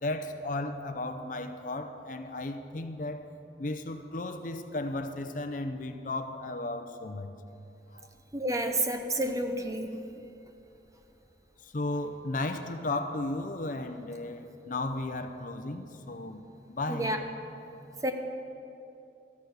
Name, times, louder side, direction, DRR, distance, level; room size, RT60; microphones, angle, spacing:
voice 1, 0.0-3.2 3.6-7.3 7.9-8.1 10.2-10.3 11.6-16.4 16.7-17.1, left 2 dB, 45° left, 7 dB, 0.7 m, -35 dB
voice 2, 8.3-10.0 16.9-17.2 18.0-18.1, right 1 dB, 20° right, 5 dB, 0.7 m, -30 dB
14.0 x 6.9 x 8.0 m, 2.8 s
head